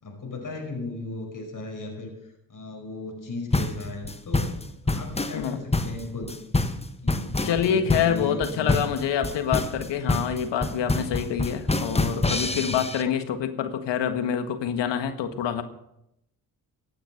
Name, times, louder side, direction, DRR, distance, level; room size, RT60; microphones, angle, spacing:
voice 1, 0.0-4.5 4.8-6.4 7.0-8.8 12.1-12.8, left 2 dB, 45° left, 1 dB, 5.2 m, -37 dB
sound 1, 3.5-13.0, left 2 dB, 15° left, 1.3 m, -26 dB
voice 2, 7.4-15.6, left 8 dB, 70° left, 9 dB, 1.7 m, -26 dB
16.0 x 8.7 x 6.4 m, 0.80 s
hypercardioid pair, 50°, 45 cm